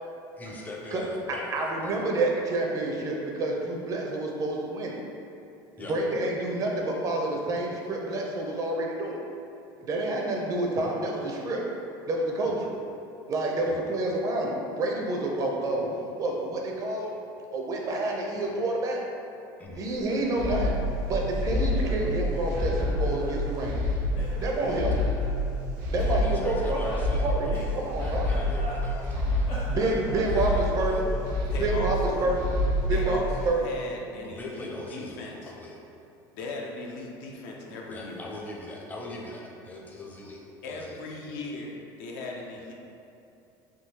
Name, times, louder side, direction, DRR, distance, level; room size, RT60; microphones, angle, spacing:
voice 1, 0.4-2.0 5.8-5.9 13.7-13.8 19.6-19.8 26.1-30.0 30.3-31.0 34.1-35.8 37.9-40.4 40.7-41.0, left 2 dB, 15° left, -2 dB, 0.5 m, -41 dB
voice 2, 1.5-5.0 5.8-9.2 9.8-11.6 12.0-12.7 13.3-17.1 17.5-19.0 19.8-20.7 21.0-23.8 24.4-24.9 25.9-26.8 27.2-28.3 29.7-31.0 31.6-32.4 32.8-33.2 33.4-33.6, right 2 dB, 35° right, -1 dB, 0.5 m, -28 dB
Laughter, 19.8-22.0 22.3-23.9 24.1-25.3 26.0-29.1 29.4-31.3, equal, 55° left, 1.1 m, -42 dB
sound 1, 20.4-33.5, left 1 dB, 85° right, 0.6 m, -28 dB
voice 3, 31.5-32.3 32.9-35.5 36.3-38.2 40.6-42.7, left 3 dB, 80° left, -1 dB, 0.5 m, -38 dB
3.6 x 2.6 x 2.8 m, 2.7 s
cardioid pair, 130°, 10 cm